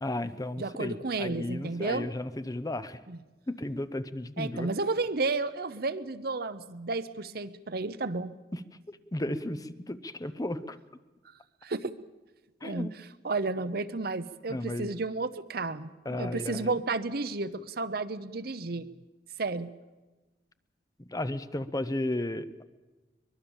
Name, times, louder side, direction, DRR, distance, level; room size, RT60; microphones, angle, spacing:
voice 1, 0.0-3.0 3.5-4.7 8.5-8.6 8.9-10.8 12.6-12.9 14.5-14.9 16.1-16.7 21.0-22.6, left 1 dB, 20° left, 13 dB, 0.7 m, -34 dB
voice 2, 0.6-2.1 3.1-3.2 4.4-8.3 11.6-11.9 12.6-18.9 19.4-19.7, right 3 dB, 60° right, 12 dB, 0.8 m, -32 dB
23.0 x 21.5 x 7.2 m, 1.2 s
head